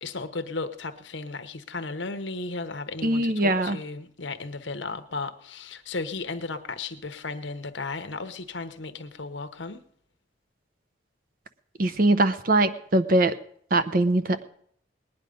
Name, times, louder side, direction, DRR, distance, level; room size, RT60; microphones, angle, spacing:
voice 1, 0.0-9.8, left 3 dB, 85° left, 10 dB, 1.0 m, -35 dB
voice 2, 3.0-3.8 11.8-13.3 13.7-14.4, right 2 dB, 50° right, 11 dB, 0.8 m, -22 dB
19.5 x 9.9 x 5.2 m, 0.64 s
head